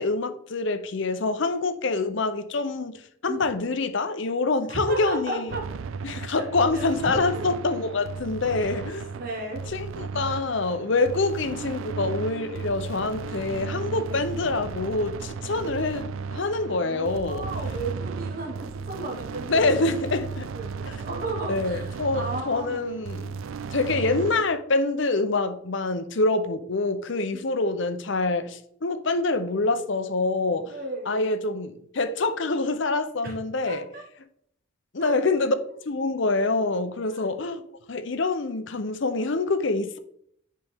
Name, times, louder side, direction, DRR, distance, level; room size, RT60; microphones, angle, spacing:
voice 1, 0.0-5.5 6.0-9.1 9.7-17.5 19.5-20.5 21.5-23.4 23.7-30.7 31.1-33.8 34.9-35.5 35.8-37.6 37.9-40.0, left 3 dB, 60° left, 0.7 m, -26 dB
voice 2, 4.7-5.6 6.3-6.4 6.7-6.9 7.1-7.4 8.8-9.6 10.2-10.4 14.1-14.3 16.7-19.7 20.5-22.8 27.3-27.5 30.7-31.3 33.2-33.3 33.7-34.0 35.0-35.2 37.1-37.4, right 2 dB, 45° right, 1.3 m, -35 dB
sound 1, 5.5-24.4, right 5 dB, 70° right, 0.4 m, -35 dB
10.5 x 4.3 x 3.6 m
head